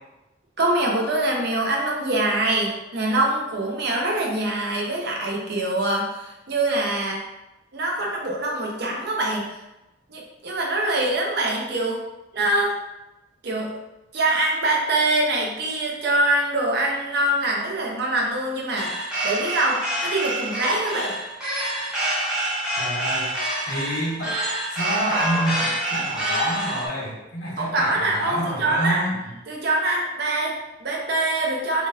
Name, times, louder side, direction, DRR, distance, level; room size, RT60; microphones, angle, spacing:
voice 1, 0.6-7.2 7.7-9.6 10.1-12.0 12.3-12.8 13.4-13.7 14.1-18.9 19.2-21.2 27.6-29.1 29.5-31.9, right 2 dB, 55° right, -1 dB, 0.6 m, -24 dB
sound 1, 18.8-26.9, right 1 dB, 5° right, 0.8 m, -27 dB
voice 2, 22.7-23.3 23.7-24.4 24.7-29.1, equal, 90° left, -6 dB, 1.2 m, -27 dB
3.6 x 2.7 x 2.3 m, 0.97 s
head